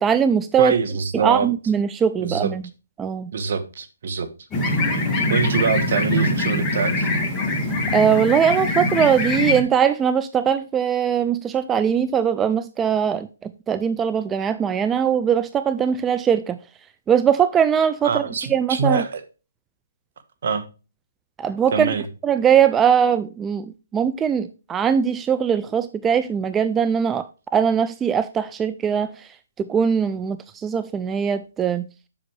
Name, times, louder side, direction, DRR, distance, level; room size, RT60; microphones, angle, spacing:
voice 1, 0.0-0.8 1.2-2.6 3.0-3.3 7.9-16.6 17.1-18.2 18.5-19.0 21.4-21.9 22.2-23.7 23.9-27.3 27.5-29.3 29.6-31.9, right 8 dB, 15° right, 0.4 m, -20 dB
voice 2, 0.6-1.5 2.2-2.5 3.3-4.3 5.3-7.1 18.0-19.2 20.4-20.6 21.7-22.0, right 5 dB, 60° right, 1.4 m, -24 dB
sound 1, 4.5-9.6, left 2 dB, 15° left, 1.9 m, -23 dB
7.6 x 6.2 x 4.6 m
hypercardioid pair, 150°, 0 cm